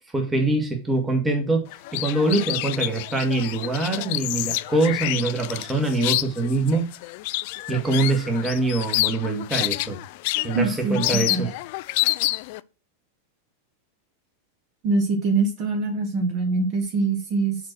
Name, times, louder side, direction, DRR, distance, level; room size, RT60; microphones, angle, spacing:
voice 1, 0.1-1.7 1.9-6.9 7.7-10.0 10.4-11.5, right 2 dB, 10° right, 1.9 m, -24 dB
sound 1, 1.7-12.6, left 19 dB, 50° left, 0.3 m, -28 dB
voice 2, 10.5-11.5 14.8-17.6, right 3 dB, 40° right, 1.7 m, -24 dB
7.4 x 4.6 x 6.0 m
figure-of-eight pair, 90°, 0 cm